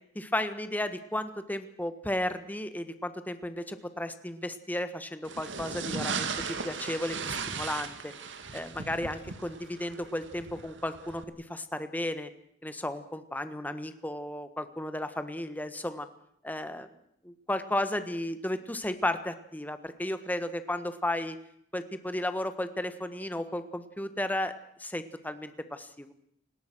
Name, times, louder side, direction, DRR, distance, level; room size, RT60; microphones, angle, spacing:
voice 1, 0.1-8.1 8.5-12.3 12.6-16.1 16.4-16.9 17.2-21.4 21.7-24.5 24.8-26.1, left 1 dB, 10° left, 10 dB, 1.5 m, -34 dB
sound 1, 5.2-11.2, right 5 dB, 75° right, 2.1 m, -37 dB
30.0 x 18.0 x 6.3 m, 0.71 s
head